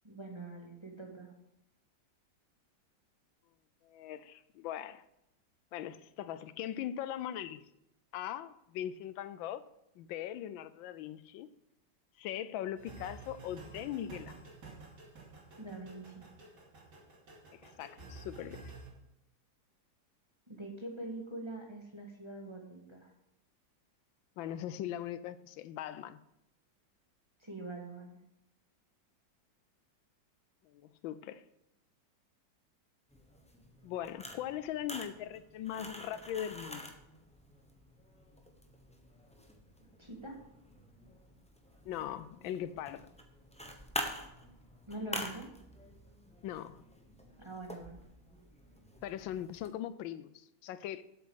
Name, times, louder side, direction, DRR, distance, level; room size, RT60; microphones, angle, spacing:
voice 1, 0.0-1.3 15.6-16.2 20.5-23.1 27.4-28.2 40.0-40.4 44.9-45.5 47.4-48.0, right 2 dB, 15° right, 1.7 m, -44 dB
voice 2, 3.8-5.0 5.7-7.6 8.1-9.6 10.0-11.5 12.2-14.4 17.5-18.7 24.4-26.2 30.6-31.4 33.8-36.9 41.8-43.1 46.4-46.8 49.0-51.0, left 11 dB, 85° left, 1.3 m, -40 dB
sound 1, 12.8-18.9, right 3 dB, 60° right, 3.0 m, -51 dB
sound 2, 33.1-49.7, equal, 5° left, 0.6 m, -47 dB
8.0 x 7.6 x 6.4 m
omnidirectional pair, 2.1 m